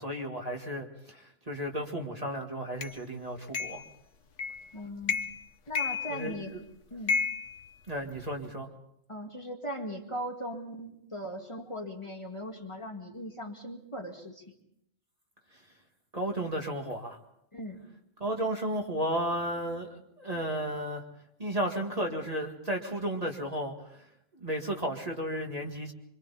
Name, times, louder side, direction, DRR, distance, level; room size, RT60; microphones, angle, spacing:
voice 1, 0.0-3.8 6.1-6.6 7.9-8.7 16.1-17.2 18.2-21.0 21.4-23.7 24.4-25.9, right 1 dB, 30° right, 1 dB, 2.1 m, -33 dB
sound 1, 2.8-2.9 3.5-3.9 4.4-4.7 5.0-5.4 5.8-6.6 7.1-8.3, left 5 dB, 75° left, 1.3 m, -32 dB
voice 2, 4.7-5.2 5.7-6.5 6.9-7.2 9.1-14.5 17.5-17.8, equal, 25° left, 1 dB, 2.1 m, -39 dB
25.5 x 25.5 x 4.2 m, 0.76 s
omnidirectional pair, 1.3 m